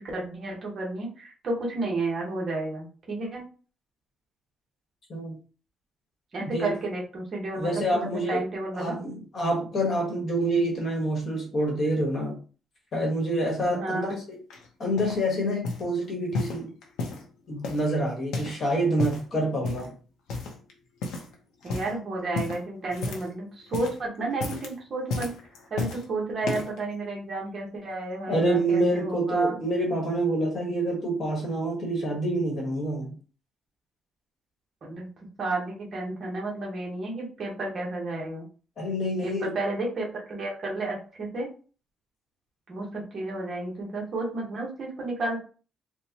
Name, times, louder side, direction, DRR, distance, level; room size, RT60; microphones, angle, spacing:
voice 1, 0.1-3.4 6.3-9.0 13.6-14.2 21.6-25.3 25.7-29.5 34.8-35.1 35.4-38.5 39.2-41.5 42.7-45.4, right 2 dB, 35° right, -2 dB, 1.1 m, -31 dB
voice 2, 6.4-6.7 7.6-8.4 8.7-12.4 12.9-14.4 14.8-16.7 17.5-19.9 28.3-33.1 38.8-39.5, right 1 dB, 35° left, 0 dB, 1.2 m, -27 dB
sound 1, 14.5-15.2 15.6-15.9 16.3-17.3 17.6-18.6 18.9-19.3 19.6-19.9 20.3-20.7 21.0-21.3 21.6-21.9 22.3-23.4 23.6-24.0 24.3-24.7 25.1-26.0 26.4-26.8 27.5-27.6, left 3 dB, 85° left, 0.8 m, -33 dB
4.2 x 2.2 x 2.8 m, 0.38 s
cardioid pair, 175°, 0 cm